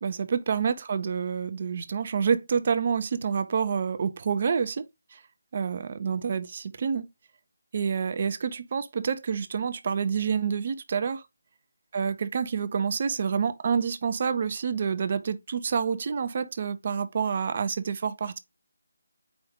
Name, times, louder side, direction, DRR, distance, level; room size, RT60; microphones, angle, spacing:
voice 1, 0.0-4.8 5.1-5.2 5.5-7.1 7.7-11.2 11.9-18.4, right 6 dB, 40° right, 0.5 m, -28 dB
4.9 x 2.6 x 3.5 m
figure-of-eight pair, 155°, 0 cm